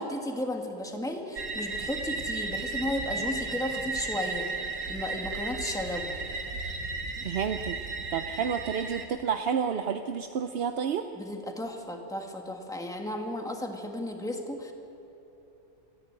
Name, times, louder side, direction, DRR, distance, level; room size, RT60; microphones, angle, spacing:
voice 1, 0.0-4.5 4.9-6.2 11.2-14.7, left 1 dB, ahead, 2 dB, 1.6 m, -34 dB
sound 1, 1.4-9.1, right 3 dB, 85° right, 1.8 m, -34 dB
voice 2, 7.2-7.8 8.1-11.1, right 7 dB, 55° right, 7 dB, 0.7 m, -30 dB
28.0 x 10.5 x 8.8 m, 3.0 s
omnidirectional pair, 1.5 m